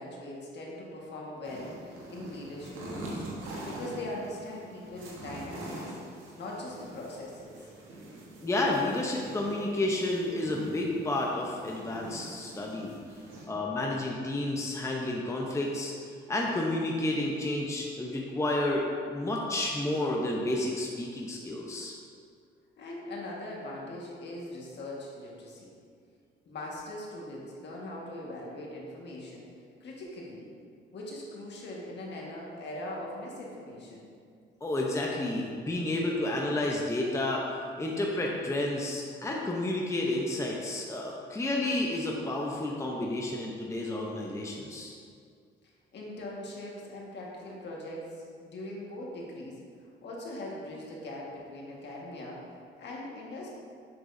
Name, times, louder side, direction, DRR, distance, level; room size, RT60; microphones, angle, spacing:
voice 1, 0.0-6.0 6.3-7.7 22.8-25.7 26.4-29.4 29.8-30.5 30.9-34.1 45.9-49.6 50.0-52.5 52.8-53.5, left 1 dB, 60° left, -3 dB, 1.6 m, -41 dB
sound 1, 1.4-13.4, right 1 dB, 90° right, 1.3 m, -44 dB
voice 2, 8.4-12.9 13.5-15.9 16.3-21.9 34.6-44.9, left 1 dB, 15° left, -2 dB, 0.7 m, -31 dB
7.7 x 6.1 x 2.7 m, 2.2 s
cardioid pair, 90°, 20 cm